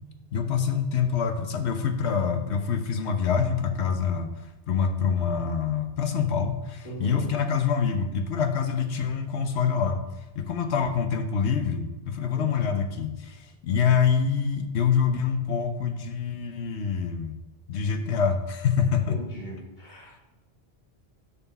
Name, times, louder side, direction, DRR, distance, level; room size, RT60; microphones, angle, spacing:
voice 1, 0.3-4.3 4.7-10.0 10.3-17.4 17.7-19.2, left 6 dB, 90° left, 7 dB, 1.1 m, -26 dB
voice 2, 6.8-7.3 12.3-12.8 19.1-20.1, right 1 dB, 45° left, -5 dB, 2.7 m, -38 dB
9.5 x 5.9 x 4.1 m, 1.0 s
omnidirectional pair, 1.1 m